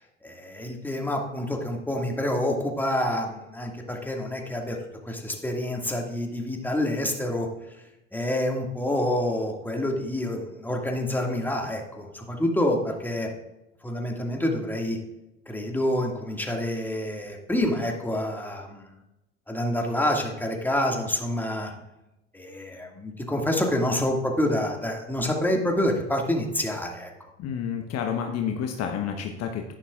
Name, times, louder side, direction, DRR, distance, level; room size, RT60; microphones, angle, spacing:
voice 1, 0.2-4.8 5.1-7.5 8.1-13.3 13.8-15.0 15.5-18.9 19.5-21.7 22.3-27.1, left 1 dB, 5° left, 1 dB, 1.9 m, -27 dB
voice 2, 27.4-29.7, left 7 dB, 50° left, 4 dB, 1.0 m, -29 dB
11.0 x 9.9 x 2.4 m, 0.94 s
hypercardioid pair, 65°, 34 cm